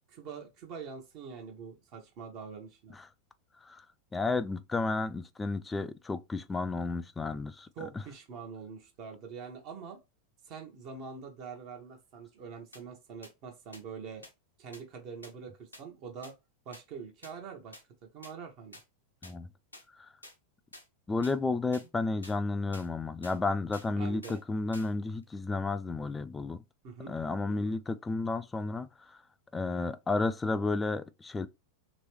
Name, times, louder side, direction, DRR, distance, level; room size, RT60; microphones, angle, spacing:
voice 1, 0.1-3.0 7.8-10.0 10.4-14.3 14.6-16.3 16.7-17.8 18.1-18.8 24.0-24.4 26.8-27.1 27.5-27.8, right 6 dB, 40° right, 0.9 m, -44 dB
voice 2, 4.1-7.7 19.2-19.5 20.0-20.1 21.1-26.6 27.1-29.2 29.5-31.5, left 3 dB, 15° left, 0.3 m, -32 dB
sound 1, 12.7-12.8 13.2-13.3 13.7-13.8 14.2-14.3 14.7-14.8 15.2-15.3 15.7-15.8 16.2-16.3 16.7-16.8 17.2-17.3 17.7-17.8 18.2-18.3 18.7-18.8 19.2-19.3 19.7-19.8 20.2-20.3 20.7-20.8 21.2-21.4 21.7-21.9 22.2-22.4 22.7-22.9 23.2-23.4 23.7-23.9 24.2-24.4 24.7-24.9 25.2-25.3, left 2 dB, 85° left, 0.8 m, -49 dB
3.1 x 2.9 x 3.0 m
figure-of-eight pair, 90°, 0 cm